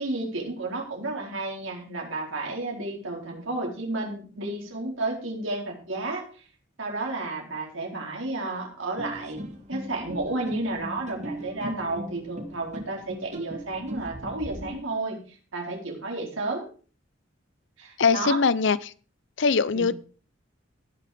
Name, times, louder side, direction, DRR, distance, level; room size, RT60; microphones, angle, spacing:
voice 1, 0.0-6.2 6.8-15.2 15.5-16.7 17.8-18.4 19.7-19.9, right 2 dB, 80° right, 0 dB, 4.5 m, -32 dB
sound 1, 9.0-14.7, right 1 dB, 40° right, 1.9 m, -38 dB
voice 2, 18.0-18.9 19.4-19.9, left 5 dB, 65° left, 18 dB, 0.6 m, -22 dB
17.5 x 6.7 x 5.1 m, 0.40 s
head